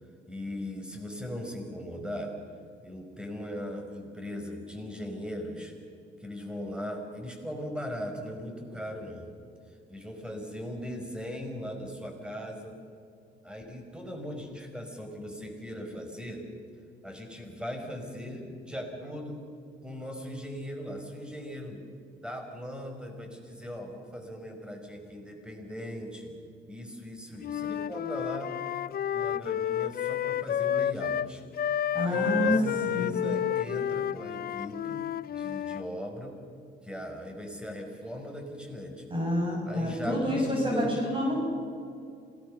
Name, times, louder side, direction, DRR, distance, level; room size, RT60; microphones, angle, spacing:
voice 1, 0.3-2.3 2.8-5.7 6.2-9.3 9.9-12.8 13.4-16.5 17.0-19.4 19.8-21.8 22.2-26.3 26.7-28.6 29.1-31.4 32.0-36.4 36.8-39.0 39.6-40.9, equal, 5° right, 3 dB, 5.2 m, -39 dB
Wind instrument woodwind instrument, 27.4-31.3 31.5-35.9, left 10 dB, 50° left, 0.5 m, -30 dB
voice 2, 31.9-32.6 32.9-33.2 39.1-41.4, equal, 25° right, -2 dB, 6.6 m, -28 dB
27.0 x 19.0 x 6.7 m, 2.4 s
cardioid pair, 90°, 20 cm